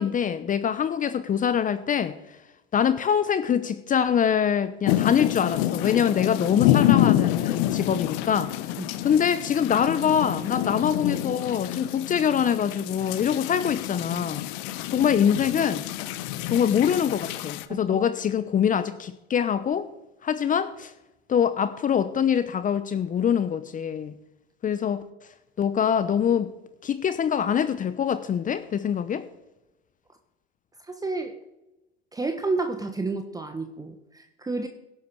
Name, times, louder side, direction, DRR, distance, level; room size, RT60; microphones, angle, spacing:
voice 1, 0.0-2.1 2.7-8.5 9.0-14.4 14.9-15.8 16.5-19.9 20.2-20.9 21.3-24.1 24.6-25.0 25.6-26.5 26.8-29.3, left 8 dB, 25° left, 13 dB, 1.0 m, -24 dB
sound 1, 4.9-17.6, left 13 dB, 55° left, 1.1 m, -27 dB
voice 2, 30.9-31.3 32.1-34.7, right 3 dB, 10° right, 7 dB, 1.3 m, -30 dB
17.5 x 10.5 x 4.8 m, 0.94 s
hypercardioid pair, 95°, 33 cm